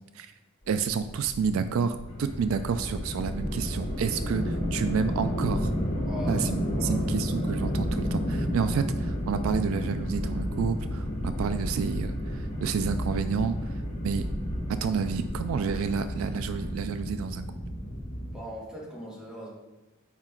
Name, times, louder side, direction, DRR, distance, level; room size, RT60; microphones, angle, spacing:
sound 1, 0.7-18.4, equal, 80° left, 1.5 m, -32 dB
voice 1, 0.7-5.7 6.3-14.2 14.7-17.4, right 6 dB, 70° right, 11 dB, 0.3 m, -30 dB
sound 2, 2.1-16.7, left 1 dB, 30° left, 1.0 m, -40 dB
voice 2, 5.9-7.1 18.2-19.5, equal, 5° right, -6 dB, 1.8 m, -40 dB
5.8 x 4.8 x 4.4 m, 1.0 s
head